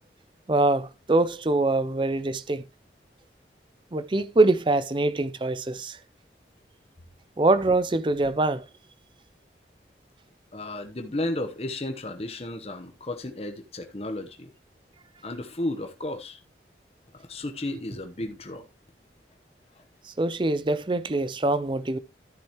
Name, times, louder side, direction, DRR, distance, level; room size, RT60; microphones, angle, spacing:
voice 1, 0.5-2.6 3.9-6.0 7.4-8.6 20.1-22.0, right 2 dB, 25° right, 0.5 m, -24 dB
voice 2, 10.5-14.5 15.2-16.4 17.3-18.6, left 1 dB, 35° left, 1.0 m, -33 dB
13.0 x 6.8 x 3.0 m
head